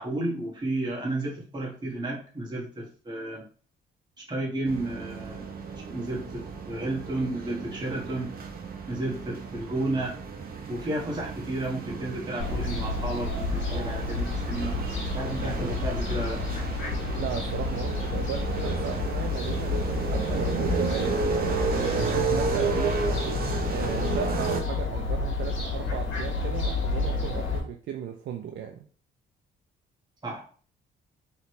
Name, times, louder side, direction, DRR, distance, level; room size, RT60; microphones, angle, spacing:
voice 1, 0.0-3.4 4.3-5.6 5.9-8.3 8.9-10.2 10.7-14.8 15.1-16.4 30.2-30.5, right 1 dB, 20° right, -4 dB, 1.7 m, -32 dB
sound 1, 4.7-24.6, right 5 dB, 50° right, 0.9 m, -32 dB
Fowl, 12.4-27.6, left 3 dB, 80° left, 1.6 m, -30 dB
voice 2, 17.1-23.0 23.7-28.9, right 8 dB, 65° right, 4 dB, 0.5 m, -36 dB
4.0 x 3.1 x 3.2 m, 0.43 s
cardioid pair, 90°, 20 cm